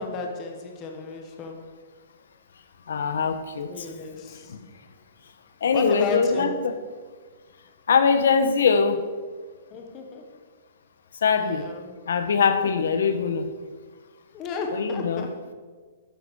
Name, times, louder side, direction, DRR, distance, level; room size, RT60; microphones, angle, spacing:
voice 1, 0.0-1.6 3.6-4.6 5.7-6.5 9.7-10.4 11.3-11.9 12.6-12.9 14.3-15.4, left 4 dB, 20° left, 3 dB, 1.3 m, -34 dB
voice 2, 2.9-3.7 4.5-4.6 5.6-6.7 7.9-9.1 11.2-11.7 12.1-13.5 14.8-15.2, left 5 dB, 75° left, 9 dB, 1.2 m, -22 dB
12.0 x 10.5 x 6.4 m, 1.5 s
hypercardioid pair, 180°, 0 cm